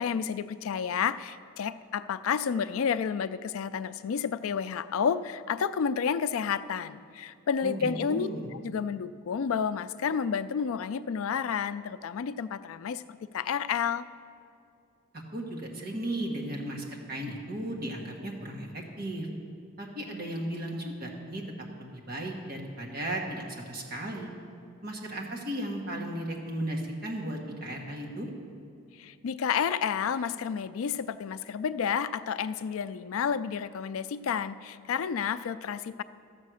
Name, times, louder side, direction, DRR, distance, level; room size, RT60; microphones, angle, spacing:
voice 1, 0.0-13.0 13.3-14.1 29.0-36.0, left 7 dB, 80° left, 14 dB, 0.4 m, -30 dB
voice 2, 7.6-8.5 15.1-19.3 19.8-21.4 21.8-24.3 24.8-28.3, right 1 dB, 45° right, -1 dB, 1.6 m, -35 dB
13.0 x 7.5 x 6.3 m, 2.3 s
head